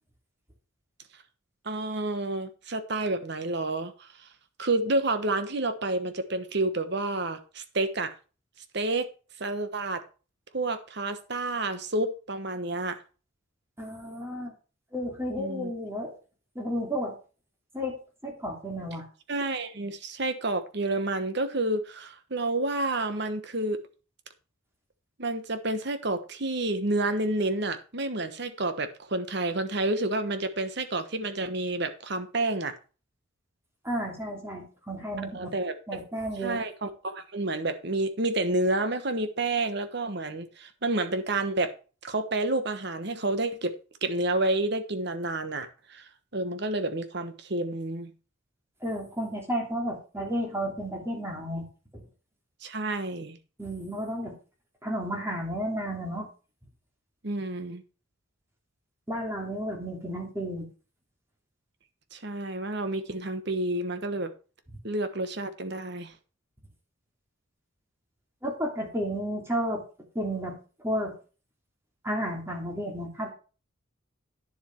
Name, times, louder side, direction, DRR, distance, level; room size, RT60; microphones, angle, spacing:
voice 1, 1.6-4.1 4.6-8.1 8.7-9.1 9.4-10.0 10.5-13.0 15.4-15.7 19.3-23.8 25.2-32.8 35.2-36.0 36.4-41.7 42.0-43.7 44.0-48.1 52.6-53.4 57.2-57.8 62.1-64.3 64.8-66.1, right 2 dB, 55° right, 1.2 m, -29 dB
voice 2, 13.8-14.5 14.9-16.1 16.5-17.1 17.7-17.9 18.2-19.0 33.8-35.5 35.9-36.6 48.8-51.7 51.9-52.0 53.6-54.3 54.8-56.3 59.1-60.7 68.4-69.8 70.1-70.6 70.8-71.1 72.0-73.3, equal, 15° right, 2.8 m, -32 dB
10.0 x 7.3 x 4.6 m
head